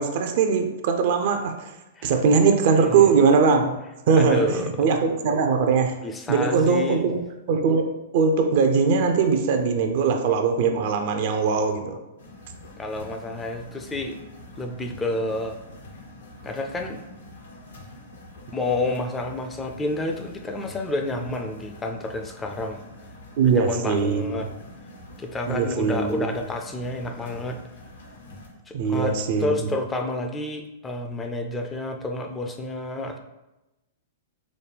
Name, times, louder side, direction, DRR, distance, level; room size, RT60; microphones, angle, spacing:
voice 1, 0.0-1.7 2.0-3.8 4.1-6.0 6.3-12.0 23.4-24.5 25.5-26.3 28.7-29.6, right 5 dB, 55° right, 5 dB, 0.5 m, -21 dB
voice 2, 4.2-4.7 6.0-7.1 12.8-14.2 14.6-15.6 16.4-17.0 18.5-22.8 23.4-24.5 25.2-27.6 28.7-33.2, left 2 dB, 15° left, 4 dB, 0.4 m, -29 dB
sound 1, 12.2-28.5, left 1 dB, 80° left, 0.9 m, -45 dB
5.0 x 2.2 x 3.4 m, 0.98 s
hypercardioid pair, 115°, 0 cm